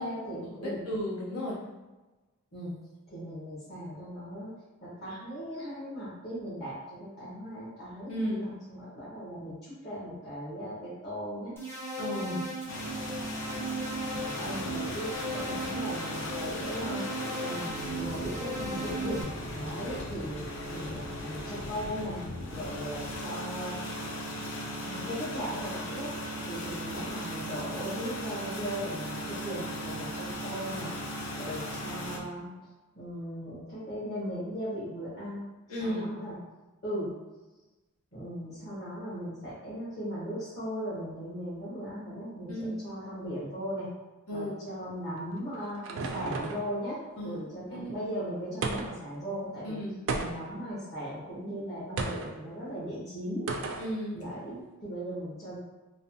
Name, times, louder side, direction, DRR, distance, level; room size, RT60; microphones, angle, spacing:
voice 1, 0.0-0.8 2.5-2.7 3.1-4.5 4.8-11.5 12.2-12.4 13.5-13.6 14.4-20.4 20.7-22.2 22.5-23.8 24.8-26.1 26.4-30.9 31.4-32.5 32.9-36.3 36.8-37.1 38.1-43.9 44.3-47.0 47.2-49.8 50.2-53.5 54.1-55.6, equal, 45° left, -13 dB, 1.1 m, -38 dB
voice 2, 0.6-1.6 8.1-8.4 12.0-12.4 35.7-36.1 42.5-42.8 44.3-44.5 47.2-47.4 47.7-47.9 49.6-50.0 53.8-54.2, equal, 85° left, -5 dB, 0.9 m, -34 dB
sound 1, 11.6-19.2, right 2 dB, 10° left, 0.6 m, -37 dB
sound 2, 12.7-32.2, equal, 65° left, 0.5 m, -37 dB
sound 3, 45.2-46.7 48.6-49.1 50.1-50.6 52.0-52.3 53.5-53.9, right 3 dB, 60° right, 0.3 m, -33 dB
3.2 x 2.0 x 2.7 m, 1.1 s
head